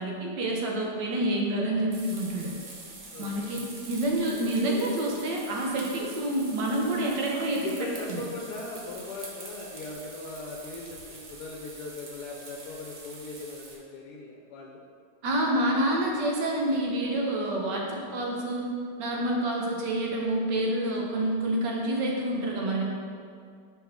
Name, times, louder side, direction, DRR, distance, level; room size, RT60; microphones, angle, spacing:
voice 1, 0.0-2.5 3.2-3.6 3.9-7.7 8.1-8.2 15.2-18.7 19.0-22.8, right 1 dB, 80° right, -1 dB, 1.6 m, -28 dB
sound 1, 1.9-13.7, right 3 dB, 50° right, 1.0 m, -45 dB
voice 2, 3.1-3.5 7.6-14.8, left 3 dB, 75° left, -1 dB, 1.1 m, -39 dB
5.9 x 4.8 x 3.5 m, 2.3 s
omnidirectional pair, 1.8 m